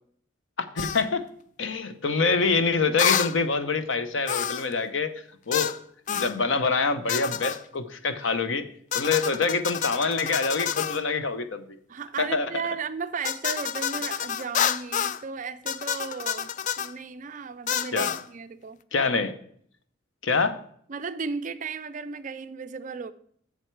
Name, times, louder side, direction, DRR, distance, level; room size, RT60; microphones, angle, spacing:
voice 1, 0.7-1.2 1.6-5.1 5.5-5.8 6.1-8.6 8.9-11.7 12.2-12.5 17.9-18.1 18.9-19.3 20.2-20.6, left 4 dB, 70° left, 11 dB, 0.8 m, -25 dB
sound 1, 0.8-1.0 3.0-3.3 4.3-4.7 5.5-5.8 6.1-6.4 7.1-7.6 8.9-11.0 13.2-15.2 15.7-16.9 17.7-18.2, left 8 dB, 40° left, 0.3 m, -28 dB
voice 2, 11.9-16.5 16.8-18.8 20.9-23.1, right 5 dB, 40° right, 12 dB, 0.5 m, -35 dB
7.8 x 7.1 x 4.6 m, 0.62 s
head